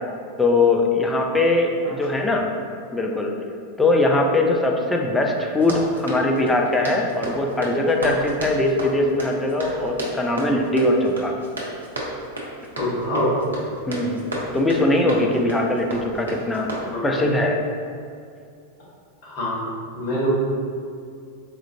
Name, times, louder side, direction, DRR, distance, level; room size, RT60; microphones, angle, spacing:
voice 1, 0.4-2.5 2.9-3.3 3.8-11.3 13.9-14.3 14.5-16.7 17.0-17.6, left 2 dB, 10° left, 1 dB, 0.3 m, -21 dB
Run, 5.5-17.4, right 1 dB, 75° right, 0.6 m, -33 dB
voice 2, 12.8-13.3 16.8-17.0 19.2-20.3, left 1 dB, 40° left, -8 dB, 1.3 m, -25 dB
4.3 x 2.4 x 2.6 m, 2.4 s
figure-of-eight pair, 90°, 0 cm